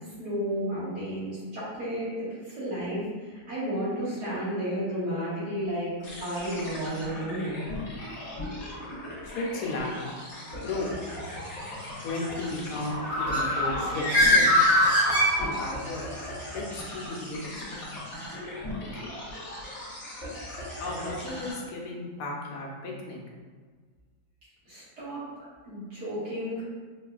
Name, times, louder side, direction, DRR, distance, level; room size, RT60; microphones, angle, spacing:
voice 1, 0.2-2.1 2.4-5.9 6.2-7.6 24.7-26.6, equal, 90° right, -12 dB, 2.2 m, -32 dB
sound 1, 6.0-21.5, left 1 dB, 45° left, 1.4 m, -38 dB
voice 2, 9.3-10.0 10.4-10.9 12.0-14.5 15.4-16.0 16.5-17.6 19.0-19.1 20.8-23.2, left 2 dB, 80° left, -2 dB, 1.2 m, -34 dB
Bird, 12.8-15.9, left 1 dB, 40° right, 1.2 m, -22 dB
4.5 x 2.3 x 2.4 m, 1.5 s
omnidirectional pair, 1.7 m